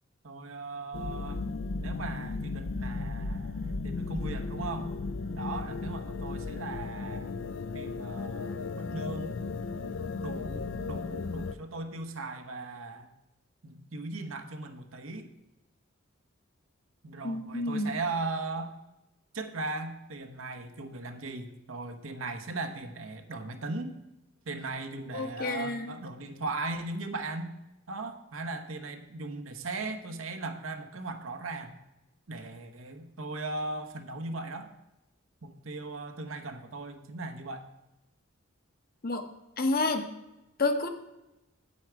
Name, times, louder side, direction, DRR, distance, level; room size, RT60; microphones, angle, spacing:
voice 1, 0.2-1.4 1.8-4.9 5.4-7.3 7.7-9.4 10.2-13.1 13.6-15.3 17.0-18.8 19.3-24.0 24.5-27.5 27.9-31.7 32.3-34.7 35.4-37.7, right 3 dB, 90° right, 7 dB, 1.0 m, -38 dB
sound 1, 0.9-11.5, left 3 dB, 70° left, 0.4 m, -35 dB
voice 2, 17.2-17.9 25.1-25.9 39.0-39.2 39.6-40.1 40.6-40.9, left 2 dB, 50° left, 7 dB, 1.0 m, -29 dB
8.6 x 8.5 x 4.6 m, 0.96 s
head